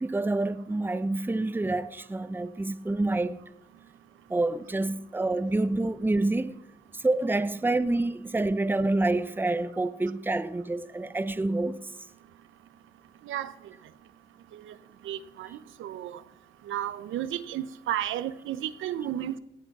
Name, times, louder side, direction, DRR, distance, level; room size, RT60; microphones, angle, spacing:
voice 1, 0.0-3.4 4.3-6.6 6.9-11.9, right 2 dB, 10° right, 0.7 m, -27 dB
voice 2, 15.0-15.5 15.8-16.2 16.7-19.4, right 11 dB, 80° right, 0.8 m, -32 dB
17.0 x 7.9 x 6.1 m
cardioid pair, 90°, 20 cm